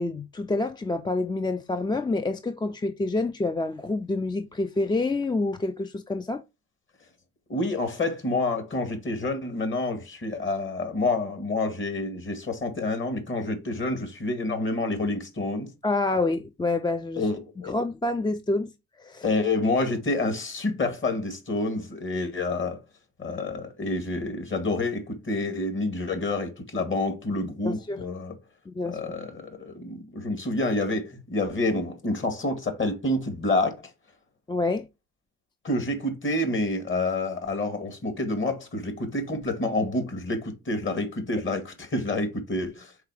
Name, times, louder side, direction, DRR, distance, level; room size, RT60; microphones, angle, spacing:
voice 1, 0.0-6.4 15.8-17.2 17.6-18.7 19.0-19.3 27.6-28.0 28.7-29.0 34.5-34.9, left 2 dB, 15° left, 0.5 m, -27 dB
voice 2, 7.5-15.7 17.2-17.7 19.2-22.8 23.2-28.3 28.8-33.7 35.6-42.9, left 2 dB, 40° left, 2.1 m, -28 dB
4.7 x 4.1 x 4.8 m
cardioid pair, 90°, 30 cm